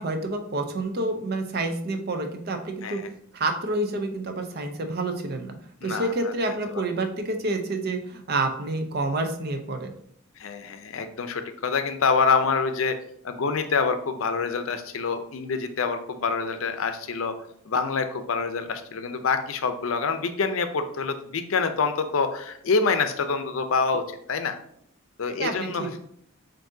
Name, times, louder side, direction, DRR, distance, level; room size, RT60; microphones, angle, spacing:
voice 1, 0.0-3.0 3.3-5.5 5.8-9.9 25.4-26.0, right 2 dB, 50° right, 5 dB, 0.6 m, -28 dB
voice 2, 5.8-6.1 10.4-13.0 13.2-17.3 17.7-24.0 24.3-24.6 25.2-25.9, left 5 dB, 75° left, 9 dB, 0.5 m, -26 dB
7.2 x 2.6 x 2.7 m, 0.68 s
head